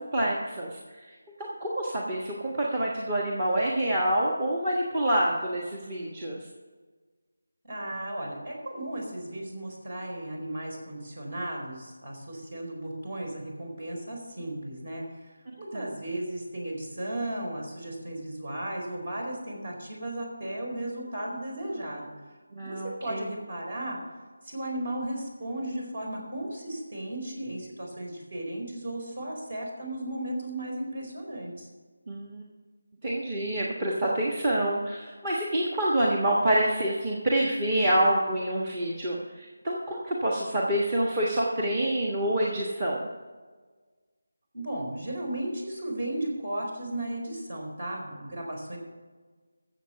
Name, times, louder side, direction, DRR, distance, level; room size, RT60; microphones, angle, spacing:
voice 1, 0.0-6.4 15.7-15.9 22.5-23.3 32.1-32.4 33.0-43.1, right 1 dB, 25° right, -2 dB, 1.4 m, -27 dB
voice 2, 7.6-15.0 15.6-22.1 22.6-24.0 24.4-31.7 44.5-48.8, right 1 dB, 50° right, 0 dB, 4.3 m, -35 dB
14.0 x 7.5 x 5.7 m, 1.4 s
figure-of-eight pair, 170°, 0 cm